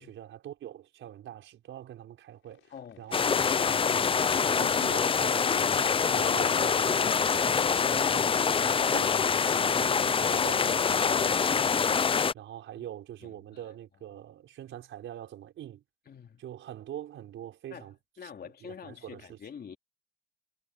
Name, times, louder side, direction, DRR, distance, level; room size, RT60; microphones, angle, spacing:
voice 1, 0.0-12.0 12.3-15.8 16.4-18.0 18.2-19.4, right 11 dB, 75° right, 5.3 m, -44 dB
sound 1, 2.3-12.1, left 12 dB, 80° left, 5.6 m, -63 dB
voice 2, 2.7-3.1 9.6-9.9 12.8-12.9 13.2-13.7 16.1-16.4 17.7-17.9 18.2-19.8, left 7 dB, 50° left, 3.0 m, -46 dB
sound 2, 3.1-12.3, left 6 dB, 25° left, 0.5 m, -25 dB
cardioid pair, 90°, 20 cm